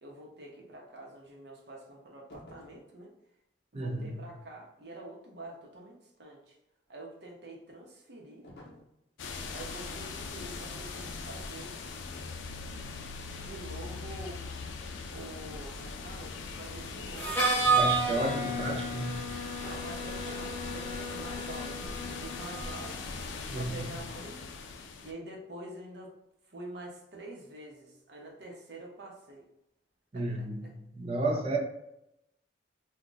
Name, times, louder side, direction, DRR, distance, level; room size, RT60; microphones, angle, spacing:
voice 1, 0.0-3.1 3.7-6.5 6.9-8.5 9.5-11.7 13.3-14.5 15.1-17.5 18.0-18.7 19.6-23.1 23.5-24.4 25.0-26.2 26.5-29.4 30.1-30.7, right 1 dB, 65° right, -1 dB, 0.7 m, -46 dB
sound 1, 2.3-2.9 8.4-9.0 10.9-11.2 11.6-11.9, left 1 dB, 60° left, 0.7 m, -52 dB
voice 2, 3.7-4.2 17.7-19.3 23.5-23.9 30.1-31.6, right 2 dB, 30° right, 1 dB, 0.4 m, -32 dB
sound 2, 9.2-25.1, left 4 dB, 80° left, 0.3 m, -40 dB
Harmonica, 17.2-22.9, right 3 dB, 10° left, 0.7 m, -31 dB
2.4 x 2.1 x 3.8 m, 0.84 s
head